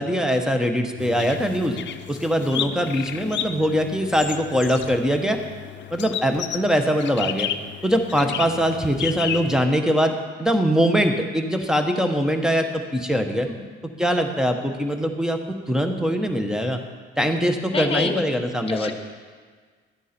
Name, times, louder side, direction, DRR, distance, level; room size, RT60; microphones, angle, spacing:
voice 1, 0.0-1.8 2.1-5.4 5.9-7.5 7.8-10.1 10.4-13.5 14.0-15.4 15.7-16.8 17.2-18.9, equal, 5° right, 5 dB, 1.1 m, -22 dB
sound 1, 1.0-9.7, left 10 dB, 65° left, 0.6 m, -33 dB
voice 2, 17.7-18.2 18.7-18.9, left 4 dB, 30° left, 6 dB, 1.2 m, -27 dB
12.0 x 9.1 x 4.4 m, 1.5 s
cardioid pair, 90°, 20 cm